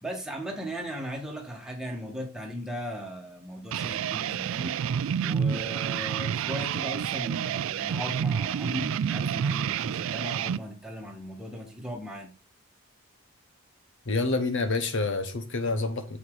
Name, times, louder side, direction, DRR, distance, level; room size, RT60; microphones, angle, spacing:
voice 1, 0.0-4.7 5.2-12.3, equal, 5° right, 1.8 m, -37 dB
sound 1, 3.7-10.6, right 8 dB, 60° right, 0.3 m, -29 dB
voice 2, 14.1-16.2, left 3 dB, 55° left, 0.9 m, -28 dB
7.4 x 5.8 x 4.0 m
head